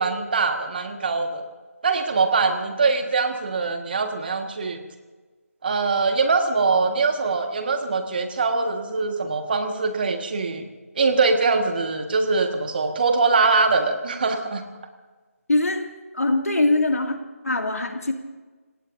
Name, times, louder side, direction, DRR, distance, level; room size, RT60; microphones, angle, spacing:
voice 1, 0.0-1.4 1.8-4.8 5.6-10.7 10.9-14.6, right 4 dB, 40° right, 5 dB, 1.7 m, -22 dB
voice 2, 15.5-15.9 16.1-17.2 17.4-18.1, left 2 dB, 75° left, 4 dB, 2.3 m, -22 dB
29.0 x 17.5 x 2.7 m, 1.3 s
figure-of-eight pair, 160°, 8 cm